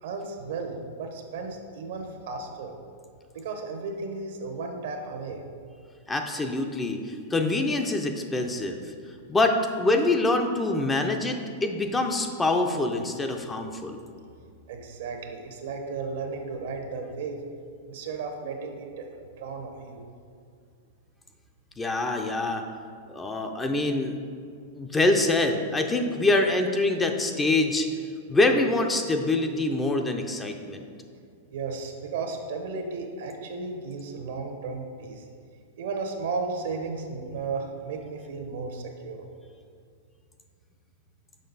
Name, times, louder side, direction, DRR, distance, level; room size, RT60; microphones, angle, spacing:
voice 1, 0.0-2.7 3.3-5.4 14.7-17.4 17.9-20.0 31.5-35.2 35.8-39.3, right 4 dB, 70° right, 4 dB, 1.0 m, -34 dB
voice 2, 6.1-8.9 9.3-14.0 21.8-22.7 23.1-24.2 24.8-27.9 28.3-30.9, left 2 dB, 15° left, 4 dB, 0.5 m, -25 dB
6.4 x 5.1 x 4.0 m, 2.2 s
hypercardioid pair, 120°, 0 cm